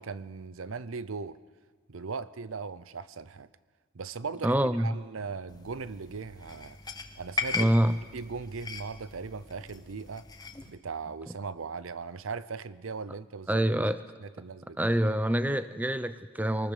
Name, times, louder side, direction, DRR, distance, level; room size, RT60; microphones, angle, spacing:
voice 1, 0.0-1.4 1.9-3.5 3.9-6.8 7.1-7.7 8.1-10.3 10.7-13.9 14.2-14.9, right 4 dB, 75° right, 0.7 m, -39 dB
voice 2, 4.4-4.9 7.5-7.9 13.5-14.0 14.8-16.7, right 1 dB, 10° right, 0.5 m, -26 dB
sound 1, 5.5-10.7, left 4 dB, 20° left, 1.1 m, -38 dB
23.5 x 19.5 x 6.8 m
head